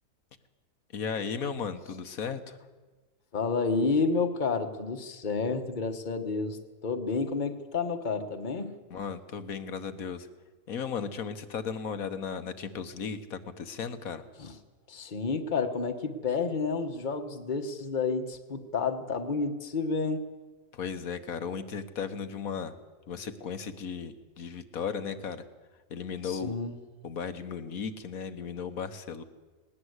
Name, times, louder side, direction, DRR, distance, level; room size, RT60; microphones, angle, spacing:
voice 1, 0.9-2.6 8.9-10.3 10.7-14.2 20.7-22.7 23.1-25.4 25.9-26.6 27.0-29.2, left 6 dB, 75° left, 10 dB, 1.6 m, -35 dB
voice 2, 3.3-8.7 14.4-14.5 14.9-20.2 26.2-26.8, left 4 dB, 35° left, 6 dB, 1.4 m, -30 dB
19.0 x 19.0 x 8.1 m, 1.3 s
omnidirectional pair, 1.5 m